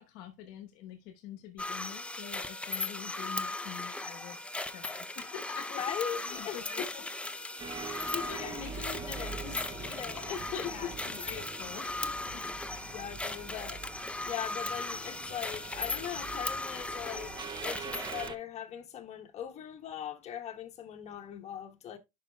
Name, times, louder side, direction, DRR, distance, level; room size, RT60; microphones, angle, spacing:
voice 1, 0.0-5.9 6.3-7.0 10.6-12.9, left 10 dB, 70° left, 1.1 m, -46 dB
sound 1, 1.6-18.3, left 2 dB, 5° left, 0.5 m, -38 dB
voice 2, 5.8-6.9 7.9-11.2 12.8-13.9 14.2-22.0, left 9 dB, 40° left, 1.7 m, -40 dB
sound 2, 7.6-18.4, right 5 dB, 25° right, 0.9 m, -44 dB
10.5 x 5.7 x 2.2 m
supercardioid pair, 105°, 18 cm